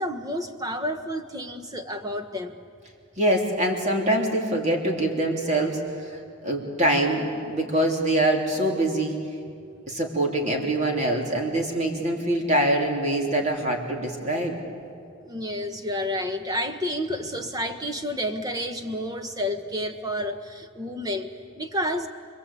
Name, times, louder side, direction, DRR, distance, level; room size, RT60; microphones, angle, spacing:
voice 1, 0.0-2.5 15.2-22.1, equal, 15° right, 6 dB, 1.3 m, -30 dB
voice 2, 3.2-6.2 6.4-9.2 9.9-14.6, right 1 dB, 30° right, 1 dB, 3.4 m, -24 dB
29.5 x 22.0 x 8.5 m, 2.5 s
head